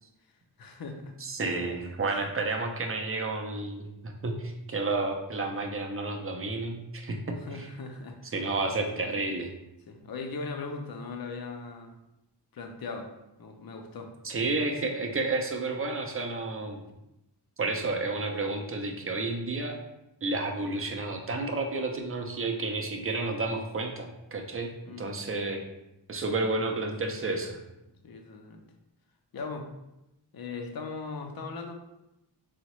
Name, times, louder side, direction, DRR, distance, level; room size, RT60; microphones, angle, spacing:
voice 1, 0.6-1.2 2.2-2.3 7.4-8.3 8.9-9.1 9.9-11.9 12.5-13.1 13.4-14.1 24.8-25.0 28.0-28.6 29.3-29.7 30.3-31.7, left 4 dB, 60° left, 4 dB, 0.5 m, -39 dB
voice 2, 1.2-7.7 8.3-9.5 14.2-16.8 17.6-19.8 20.2-24.7 25.0-25.6 26.1-27.6, right 3 dB, 35° right, 3 dB, 0.5 m, -31 dB
3.7 x 2.1 x 3.0 m, 0.91 s
wide cardioid pair, 55°, 42 cm